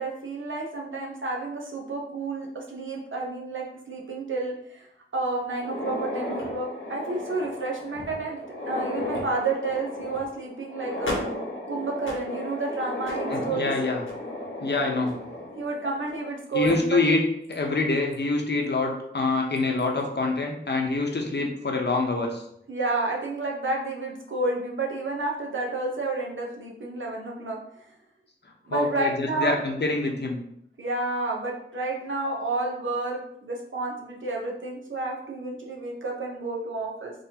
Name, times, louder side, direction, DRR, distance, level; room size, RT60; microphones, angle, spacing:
voice 1, 0.0-4.9 5.1-8.4 8.6-11.2 11.7-13.7 15.6-17.0 22.7-27.6 28.7-29.6 30.8-37.1, right 3 dB, 75° right, -1 dB, 0.9 m, -30 dB
sound 1, 5.5-16.3 16.6-16.7 17.5-17.6 18.1-18.2 19.6-19.8, left 1 dB, 80° left, 1.0 m, -34 dB
voice 2, 13.3-14.0 14.6-15.1 16.5-17.2 17.5-22.4 28.7-30.4, left 3 dB, 60° left, 1 dB, 0.8 m, -25 dB
3.9 x 3.1 x 2.8 m, 0.73 s
wide cardioid pair, 55°, 20 cm